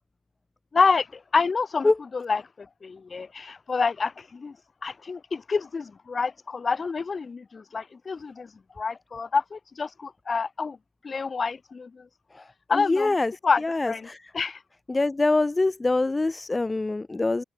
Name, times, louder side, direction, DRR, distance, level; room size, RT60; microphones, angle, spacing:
voice 1, 0.7-4.5 4.8-8.5 8.8-10.8 11.0-12.1 12.7-13.1 13.4-14.1 14.3-14.6, left 4 dB, 35° left, 1.1 m, -28 dB
voice 2, 12.7-13.3 13.6-14.2 14.9-17.4, left 2 dB, 20° left, 0.4 m, -24 dB
cardioid pair, 90°, 0 cm